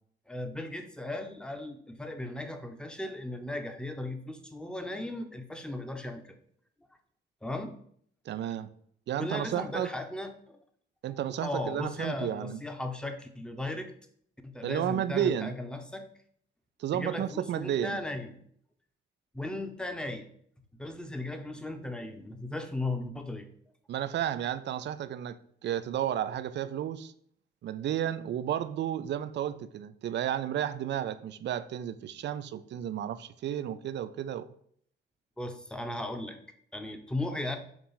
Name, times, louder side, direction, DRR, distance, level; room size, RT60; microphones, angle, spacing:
voice 1, 0.3-6.2 7.4-7.7 9.2-10.6 11.1-13.9 14.4-16.0 16.9-18.4 19.3-20.3 20.8-23.5 35.4-36.4 36.7-37.6, left 2 dB, 5° left, 5 dB, 0.9 m, -36 dB
voice 2, 8.3-8.7 9.1-9.9 11.0-12.6 14.6-15.5 16.8-18.0 23.9-27.1 27.6-34.5, right 10 dB, 65° right, 14 dB, 0.5 m, -32 dB
7.2 x 2.5 x 5.6 m, 0.64 s
cardioid pair, 90°, 20 cm